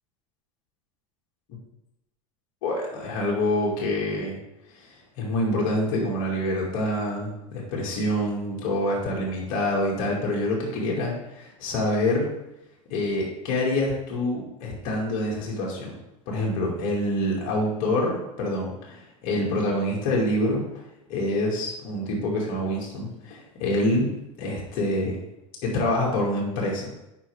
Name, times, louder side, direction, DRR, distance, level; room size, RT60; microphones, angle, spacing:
voice 1, 2.6-4.4 4.7-12.3 12.9-15.9 16.3-20.7 21.1-24.1 24.4-25.2 25.6-26.9, left 1 dB, 65° left, -3 dB, 2.5 m, -26 dB
8.7 x 5.7 x 3.6 m, 0.88 s
hypercardioid pair, 85°, 17 cm